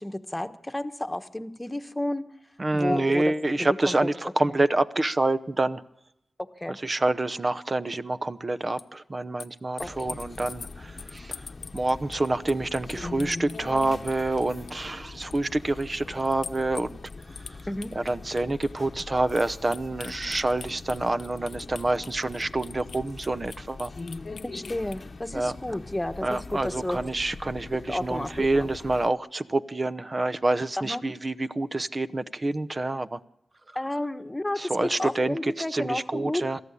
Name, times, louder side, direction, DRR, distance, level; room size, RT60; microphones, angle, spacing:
voice 1, 0.0-2.3 2.7-3.3 3.6-4.1 6.4-6.8 9.8-10.2 17.7-17.9 24.4-27.0 27.9-28.7 30.8-31.0 33.7-36.4, left 1 dB, 15° left, 1.3 m, -32 dB
voice 2, 2.6-5.8 6.8-11.5 11.7-17.0 17.9-23.9 25.3-25.8 26.2-33.2 34.6-36.6, right 2 dB, 40° right, 0.8 m, -27 dB
sound 1, 8.8-8.9 9.4-14.9 15.2-15.5 15.8-15.9 16.2-25.0, left 5 dB, 80° left, 0.6 m, -43 dB
sound 2, 9.8-29.1, left 3 dB, 50° left, 0.9 m, -42 dB
22.0 x 14.0 x 8.4 m
cardioid pair, 50°, 0 cm